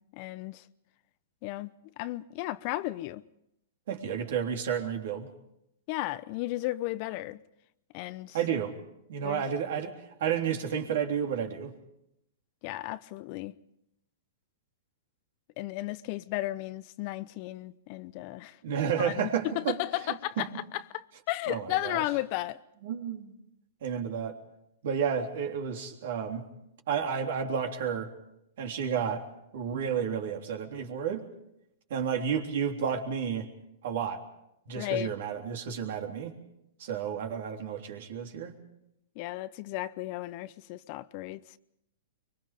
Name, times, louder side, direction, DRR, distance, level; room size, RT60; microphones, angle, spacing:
voice 1, 0.2-0.6 1.4-1.7 2.0-3.2 5.9-7.4 7.9-8.4 9.2-9.4 12.6-13.5 15.6-18.6 19.0-22.6 34.8-35.1 39.2-41.4, left 17 dB, 45° left, 0.8 m, -34 dB
voice 2, 3.9-5.3 8.3-8.8 9.1-11.7 18.6-19.8 20.4-20.5 21.5-22.0 22.8-23.4 23.8-24.4 24.8-26.5 26.9-28.1 28.6-29.3 29.5-31.3 31.9-33.5 33.8-34.2 34.7-36.3 36.8-38.6, right 7 dB, 65° right, 3.5 m, -31 dB
24.0 x 23.5 x 5.2 m
hypercardioid pair, 120°, 0 cm